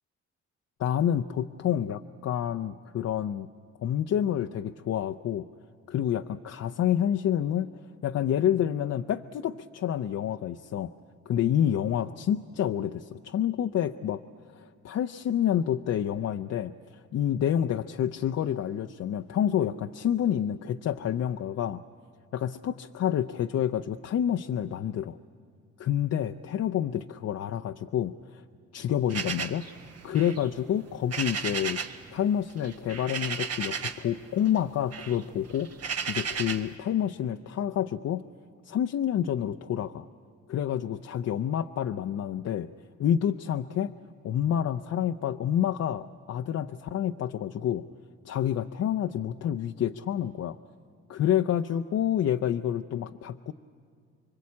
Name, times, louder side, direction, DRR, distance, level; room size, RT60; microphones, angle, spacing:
voice 1, 0.8-3.5 3.8-5.4 5.9-7.7 8.0-10.9 11.3-14.2 14.6-21.8 22.3-25.2 25.8-28.4 28.7-29.6 30.0-31.8 32.1-35.7 36.1-38.2 38.6-40.1 40.5-42.7 43.0-43.9 44.2-47.8 48.3-50.6 51.1-53.5, left 10 dB, 55° left, 7 dB, 0.6 m, -28 dB
sound 1, 29.1-32.0 32.3-34.1 34.5-36.7, right 6 dB, 55° right, 1.4 m, -34 dB
26.0 x 23.0 x 8.5 m, 2.2 s
cardioid pair, 90°, 30 cm